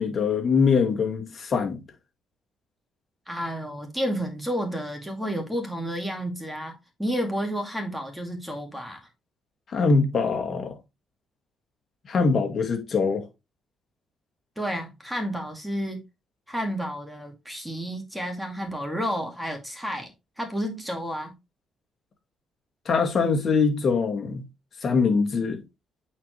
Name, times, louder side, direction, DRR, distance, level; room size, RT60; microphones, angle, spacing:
voice 1, 0.0-1.8 9.7-10.7 12.1-13.2 22.9-24.4 24.8-25.6, left 4 dB, 50° left, 1.9 m, -23 dB
voice 2, 3.3-9.1 14.6-16.0 16.5-20.1 20.4-21.3, equal, 5° right, 2.1 m, -31 dB
8.5 x 4.5 x 3.2 m
cardioid pair, 90°, 0 cm